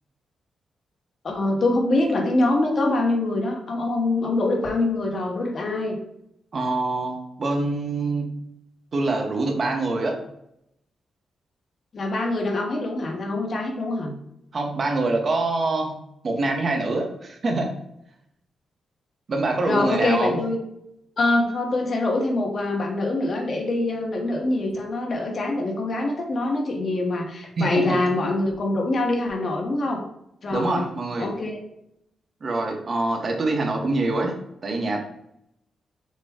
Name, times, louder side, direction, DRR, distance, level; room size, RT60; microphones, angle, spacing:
voice 1, 1.2-6.0 11.9-14.1 19.6-20.6 21.2-30.0 30.4-30.9 31.2-31.6, left 2 dB, 40° left, 1 dB, 1.0 m, -24 dB
voice 2, 6.5-8.4 8.9-10.2 14.5-16.0 16.2-17.7 19.3-20.4 27.6-28.0 30.5-31.3 32.4-34.3 34.6-35.0, right 2 dB, 40° right, 2 dB, 0.9 m, -25 dB
6.4 x 2.2 x 3.5 m, 0.77 s
wide cardioid pair, 135°, 0 cm